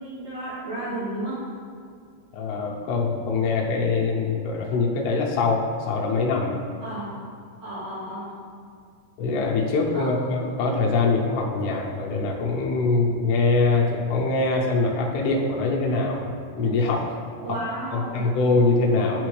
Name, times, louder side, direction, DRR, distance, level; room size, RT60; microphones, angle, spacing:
voice 1, 0.0-1.4 6.8-7.1 7.6-8.3 9.9-10.1 17.4-18.2, right 1 dB, 80° right, -10 dB, 1.5 m, -32 dB
voice 2, 2.3-6.6 9.2-17.2 17.9-19.3, left 3 dB, 80° left, -2 dB, 2.8 m, -23 dB
10.5 x 4.2 x 3.2 m, 2.1 s
omnidirectional pair, 4.9 m